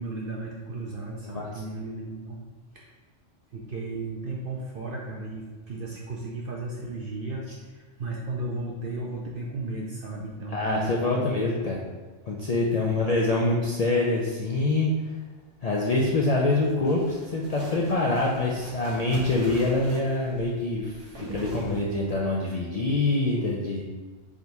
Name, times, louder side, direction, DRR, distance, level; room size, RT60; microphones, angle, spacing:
voice 1, 0.0-2.4 2.7-2.9 3.5-11.3 12.7-13.0, right 2 dB, 60° right, -2 dB, 0.6 m, -35 dB
voice 2, 10.5-11.8 12.2-14.9 15.6-23.8, left 2 dB, 65° left, -4 dB, 0.3 m, -25 dB
sound 1, 16.3-22.3, right 1 dB, 80° right, 1.3 m, -43 dB
3.6 x 2.7 x 4.4 m, 1.2 s
omnidirectional pair, 1.3 m